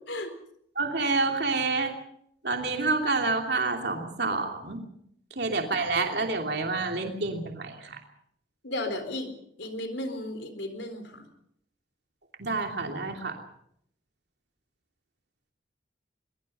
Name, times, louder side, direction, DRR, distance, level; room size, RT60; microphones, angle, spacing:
voice 1, 0.8-1.9 2.4-4.8 5.4-8.0 12.4-13.4, right 3 dB, 60° right, 3 dB, 3.0 m, -28 dB
voice 2, 8.6-11.3, left 1 dB, 75° left, 8 dB, 4.1 m, -34 dB
23.5 x 22.5 x 5.5 m, 0.71 s
head